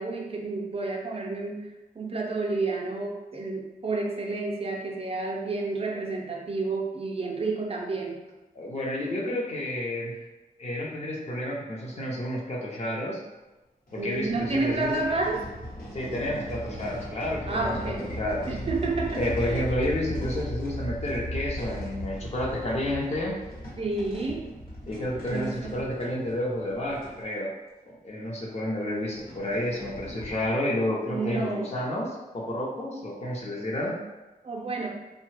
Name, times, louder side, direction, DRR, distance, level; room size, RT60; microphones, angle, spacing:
voice 1, 0.0-1.7 1.9-8.2 14.0-15.4 17.5-18.1 18.5-19.6 23.8-24.5 25.3-25.8 30.3-30.4 31.0-31.7 34.4-34.9, right 3 dB, 40° right, -1 dB, 0.4 m, -30 dB
voice 2, 8.5-10.2 10.6-13.2 13.9-14.9 15.9-17.7 18.1-18.5 19.2-23.4 24.9-27.5 27.9-34.0, left 1 dB, 45° left, -3 dB, 0.7 m, -30 dB
sound 1, 13.3-13.4 13.9-27.2 27.9-28.0 28.2-28.3 28.9-30.5, equal, 65° left, 1.1 m, -37 dB
2.7 x 2.2 x 3.2 m, 1.1 s
wide cardioid pair, 105°, 16 cm